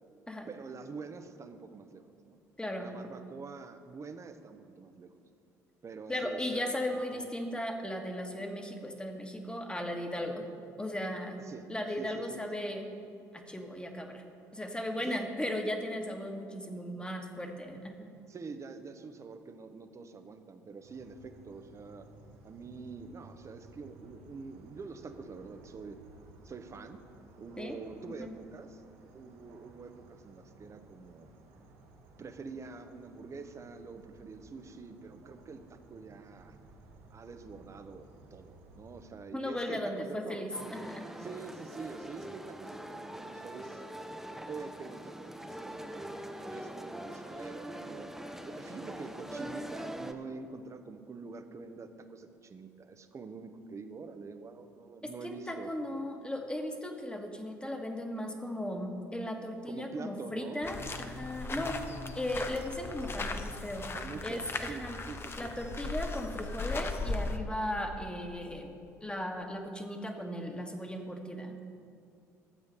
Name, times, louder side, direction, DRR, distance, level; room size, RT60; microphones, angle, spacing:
voice 1, 0.5-2.4 2.8-5.1 5.8-6.8 7.1-7.2 11.4-11.7 12.0-12.4 15.1-15.3 18.3-22.1 22.4-26.0 26.4-27.0 27.4-28.8 29.1-31.3 32.2-36.6 37.1-40.5 41.2-43.8 44.5-48.1 48.4-55.7 59.7-60.6 61.4-62.2 63.9-65.5, right 4 dB, 35° right, 9 dB, 1.0 m, -46 dB
voice 2, 2.6-2.9 6.1-10.4 10.8-11.4 11.7-12.8 13.3-14.2 14.5-18.1 27.6-27.8 28.2-28.3 39.3-41.0 55.2-61.8 62.1-63.9 64.2-65.0 65.4-68.7 69.0-71.5, left 1 dB, 10° left, 3 dB, 1.5 m, -37 dB
sound 1, 20.8-39.0, right 2 dB, 70° right, 1.5 m, -57 dB
sound 2, 40.5-50.1, right 1 dB, 5° right, 0.9 m, -43 dB
sound 3, 60.6-67.4, left 3 dB, 30° left, 0.9 m, -38 dB
12.5 x 8.1 x 5.3 m, 2.4 s
hypercardioid pair, 55°, 8 cm